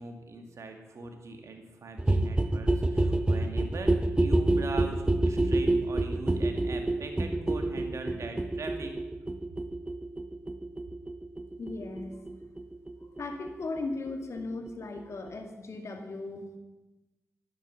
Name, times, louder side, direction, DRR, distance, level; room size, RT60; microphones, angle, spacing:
voice 1, 0.0-8.9, right 3 dB, 65° right, 4 dB, 2.3 m, -41 dB
sound 1, 2.0-13.5 13.8-13.9 14.1-14.2 14.4-14.5 14.7-14.8 15.0-15.1 15.3-15.4, right 2 dB, 15° right, 0.9 m, -28 dB
voice 2, 11.6-12.2 13.2-16.6, left 3 dB, 60° left, 5 dB, 2.2 m, -37 dB
11.0 x 9.4 x 7.0 m, 1.1 s
supercardioid pair, 45°, 5 cm